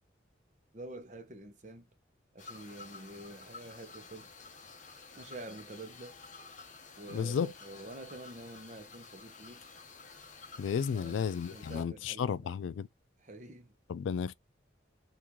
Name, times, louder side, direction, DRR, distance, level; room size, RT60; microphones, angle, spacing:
voice 1, 0.7-1.9 2.3-4.4 5.1-6.2 7.0-9.6 10.9-12.6 13.2-13.7, right 2 dB, 40° right, 0.7 m, -48 dB
sound 1, 2.4-11.8, left 4 dB, 40° left, 0.8 m, -51 dB
voice 2, 7.1-7.5 10.6-12.9 13.9-14.3, left 7 dB, 90° left, 0.3 m, -33 dB
2.9 x 2.4 x 3.6 m
head